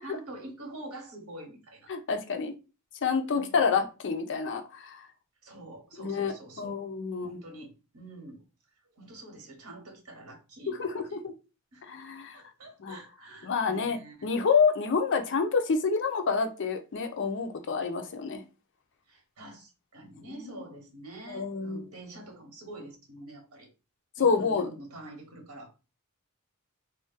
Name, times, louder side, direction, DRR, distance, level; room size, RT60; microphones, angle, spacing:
voice 1, 0.0-1.9 3.3-3.8 5.4-6.8 7.2-8.4 9.0-11.2 11.7-11.8 12.3-14.3 19.1-23.7 24.2-25.7, right 1 dB, 75° right, 1.0 m, -46 dB
voice 2, 1.9-2.5 3.0-5.1 6.0-7.4 10.7-11.3 11.9-12.4 12.8-13.0 13.4-18.4 20.3-20.6 21.3-21.8 24.2-24.7, left 5 dB, 60° left, 0.5 m, -28 dB
2.5 x 2.1 x 3.9 m
head